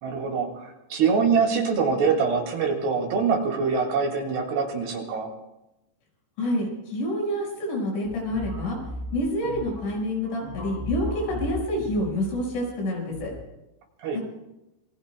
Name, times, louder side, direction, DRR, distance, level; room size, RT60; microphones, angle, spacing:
voice 1, 0.0-5.3 14.0-14.2, right 5 dB, 70° right, 2 dB, 4.3 m, -24 dB
voice 2, 6.4-8.8 9.1-13.3 14.1-14.2, left 1 dB, 90° left, -1 dB, 7.8 m, -28 dB
sound 1, 8.0-13.4, left 1 dB, 65° left, 8.3 m, -37 dB
27.0 x 23.0 x 2.3 m, 0.92 s
omnidirectional pair, 5.1 m